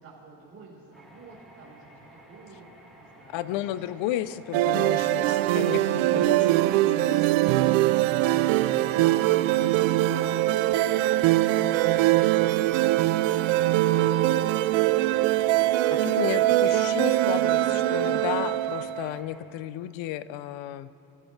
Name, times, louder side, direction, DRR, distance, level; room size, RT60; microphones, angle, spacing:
voice 1, 0.0-2.6 3.0-3.8 5.1-7.7 8.1-11.2 17.6-18.0, right 4 dB, 30° right, -6 dB, 4.1 m, -49 dB
sound 1, 0.9-19.4, right 1 dB, ahead, 3.1 m, -52 dB
voice 2, 3.3-5.3 5.5-6.4 6.7-7.2 15.9-20.9, left 13 dB, 80° left, 15 dB, 0.7 m, -33 dB
sound 2, 4.5-19.1, right 15 dB, 90° right, 0.6 m, -22 dB
24.0 x 16.0 x 3.3 m, 2.9 s
cardioid pair, 120°, 45 cm